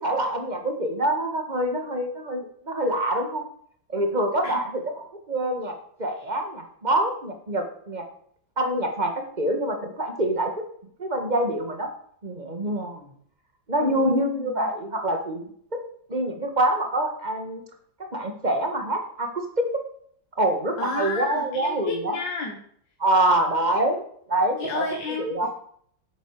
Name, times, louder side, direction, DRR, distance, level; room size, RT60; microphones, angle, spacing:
voice 1, 0.0-3.4 3.9-8.0 8.6-10.6 11.0-11.9 12.2-13.1 13.7-15.4 16.1-17.6 18.1-19.8 20.4-22.2 23.0-24.0 24.3-24.8 25.2-25.5, right 1 dB, 25° right, 4 dB, 1.9 m, -25 dB
voice 2, 13.8-14.7 20.8-22.6 24.6-25.5, left 4 dB, 70° left, 3 dB, 2.0 m, -32 dB
9.6 x 8.3 x 6.7 m, 0.63 s
omnidirectional pair, 2.0 m